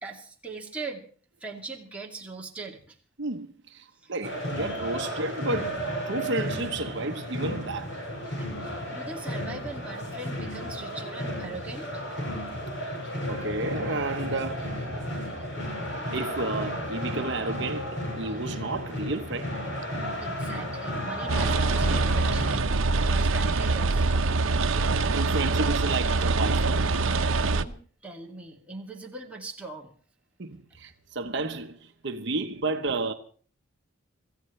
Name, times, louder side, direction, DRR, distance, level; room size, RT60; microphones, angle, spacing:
voice 1, 0.0-1.1 1.4-3.0 4.0-4.1 8.4-8.5 8.9-12.0 20.2-22.5 23.1-24.1 27.4-29.9, right 3 dB, 5° right, 2.4 m, -40 dB
voice 2, 3.2-8.0 13.3-14.7 16.1-19.6 24.7-26.9 30.4-33.1, right 3 dB, 60° right, 1.0 m, -32 dB
sound 1, 4.2-22.6, equal, 70° left, 7.5 m, -33 dB
sound 2, 21.3-27.6, right 3 dB, 85° right, 0.8 m, -24 dB
26.0 x 15.0 x 3.2 m
head